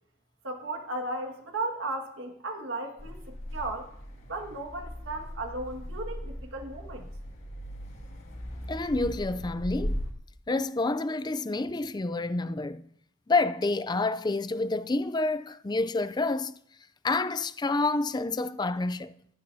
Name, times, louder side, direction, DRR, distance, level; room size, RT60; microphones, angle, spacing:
voice 1, 0.4-3.9 4.3-7.1, right 2 dB, 75° right, 1.8 m, -35 dB
sound 1, 3.0-10.1, equal, 85° left, 2.2 m, -38 dB
voice 2, 8.7-10.0 10.5-12.9 13.3-16.6 17.0-19.1, left 3 dB, 20° left, 0.4 m, -28 dB
15.5 x 14.5 x 2.8 m
head